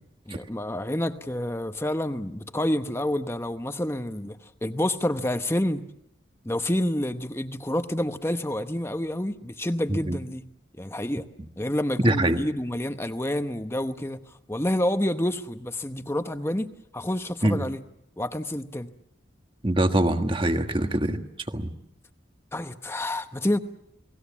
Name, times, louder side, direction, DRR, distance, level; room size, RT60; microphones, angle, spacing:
voice 1, 0.3-5.9 6.4-10.4 10.7-11.2 11.6-14.2 14.5-17.8 18.2-18.9 22.5-23.6, left 1 dB, 15° left, 0.9 m, -28 dB
voice 2, 12.0-12.4 17.4-17.6 19.6-21.2 21.5-21.7, right 1 dB, 25° right, 1.4 m, -23 dB
29.5 x 19.5 x 7.2 m
head